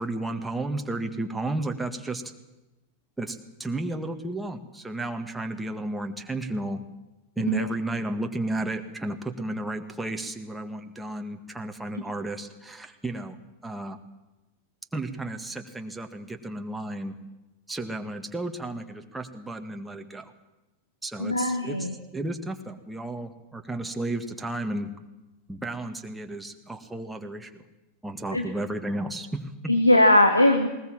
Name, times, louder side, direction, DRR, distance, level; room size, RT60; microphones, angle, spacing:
voice 1, 0.0-2.2 3.2-6.8 7.3-13.3 13.6-14.0 14.9-17.2 17.7-20.3 21.0-24.9 25.5-27.6 28.0-29.7, right 2 dB, 5° right, 5 dB, 1.8 m, -33 dB
voice 2, 21.2-21.9 28.3-28.5 29.7-30.7, left 1 dB, 85° left, 6 dB, 1.5 m, -20 dB
20.0 x 19.5 x 7.5 m, 1.0 s
figure-of-eight pair, 90°, 0 cm